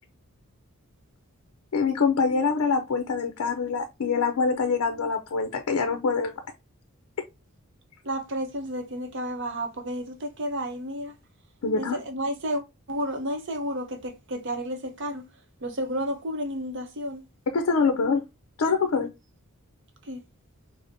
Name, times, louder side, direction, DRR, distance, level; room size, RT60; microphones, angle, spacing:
voice 1, 1.7-6.3 11.6-12.0 17.5-18.2 18.6-19.1, left 4 dB, 75° left, 0.5 m, -24 dB
voice 2, 8.0-11.1 11.8-15.3 15.6-17.3 20.0-20.2, equal, 55° right, 0.7 m, -31 dB
4.9 x 2.0 x 2.6 m
head